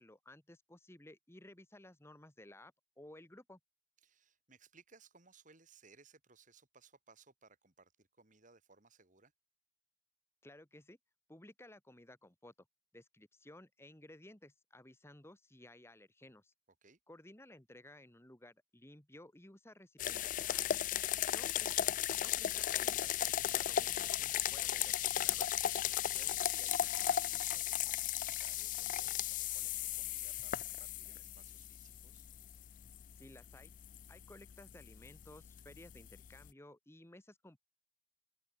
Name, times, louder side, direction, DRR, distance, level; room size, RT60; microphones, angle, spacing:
voice 1, 0.0-3.6 10.4-11.0 11.3-12.5 12.9-16.5 17.1-20.6 21.3-21.8 22.2-25.5 33.2-33.7 34.1-37.6, left 1 dB, 15° left, 1.8 m, -57 dB
voice 2, 4.0-9.3 16.8-17.0 21.0-21.1 25.7-32.3, right 4 dB, 45° right, 3.9 m, -63 dB
sound 1, 20.0-36.5, left 11 dB, 45° left, 0.3 m, -36 dB
open air
head